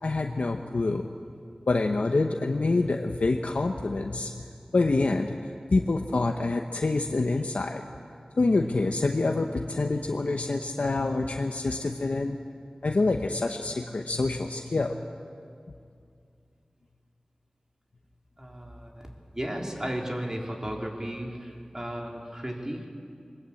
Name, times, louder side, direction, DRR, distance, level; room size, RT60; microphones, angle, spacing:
voice 1, 0.0-1.2 1.7-4.4 4.7-7.8 8.4-12.4 12.8-15.0, left 3 dB, 85° left, 3 dB, 0.9 m, -26 dB
voice 2, 18.4-22.9, equal, 25° right, 0 dB, 3.2 m, -35 dB
21.5 x 19.5 x 8.5 m, 2.4 s
wide cardioid pair, 60°, 2 cm